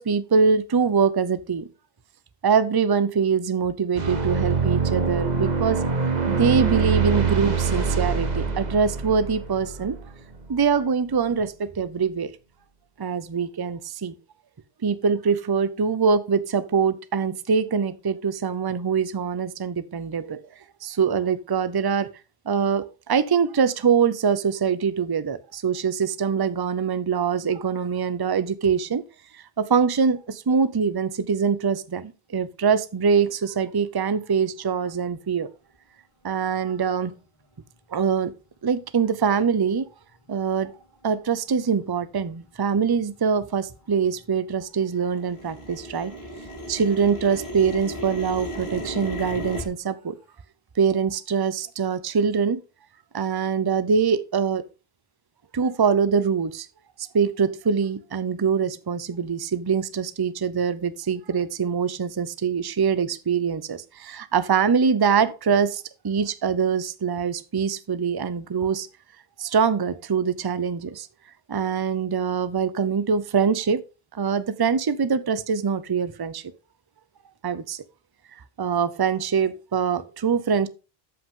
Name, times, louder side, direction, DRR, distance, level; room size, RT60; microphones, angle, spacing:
voice 1, 0.0-1.7 2.4-5.8 6.3-10.0 10.5-12.3 13.0-14.1 14.8-20.5 20.8-22.1 22.5-29.0 29.3-35.5 36.2-37.1 37.9-38.3 38.6-39.9 40.3-40.7 41.0-46.1 46.7-50.1 50.8-52.6 53.1-54.6 55.5-56.7 57.1-68.9 69.4-71.1 71.5-73.8 74.1-76.4 77.4-77.8 78.6-80.7, right 6 dB, 30° right, 0.5 m, -23 dB
sound 1, 3.9-10.6, right 5 dB, 45° right, 1.2 m, -24 dB
sound 2, 38.8-38.9 39.5-39.6 40.3-40.6 41.0-41.1 41.4-41.9 42.2-44.5 44.8-49.6, equal, 30° left, 3.0 m, -36 dB
13.0 x 5.7 x 3.7 m
omnidirectional pair, 1.0 m